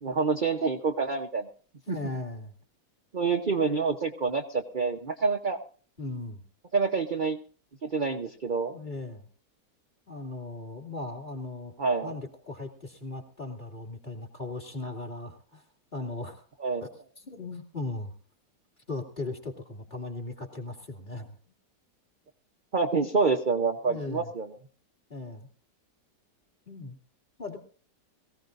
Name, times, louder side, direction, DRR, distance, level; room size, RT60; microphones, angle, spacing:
voice 1, 0.0-1.5 1.9-2.0 3.1-5.6 6.7-7.4 7.8-8.7 11.8-12.1 16.6-16.8 22.7-24.5, right 4 dB, 35° right, 3 dB, 0.9 m, -27 dB
voice 2, 1.9-2.5 6.0-6.4 8.7-9.3 10.1-11.7 12.0-15.6 15.9-16.4 16.8-16.9 17.2-18.1 18.9-21.3 23.9-24.3 25.1-25.5 26.7-27.0 27.4-27.6, left 2 dB, 25° left, 3 dB, 2.8 m, -38 dB
22.5 x 16.0 x 2.6 m, 0.41 s
omnidirectional pair, 1.9 m